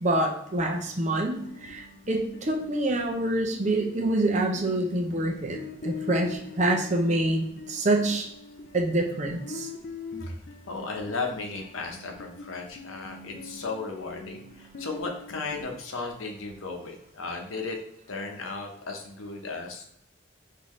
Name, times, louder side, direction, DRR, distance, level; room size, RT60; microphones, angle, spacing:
voice 1, 0.0-8.3 8.7-9.7, right 1 dB, 35° right, 1 dB, 0.7 m, -26 dB
sound 1, 1.3-15.7, left 4 dB, 50° left, 0.4 m, -43 dB
voice 2, 10.7-17.8 18.1-19.9, left 3 dB, 90° left, 3 dB, 0.8 m, -35 dB
5.5 x 2.8 x 3.1 m, 0.77 s
head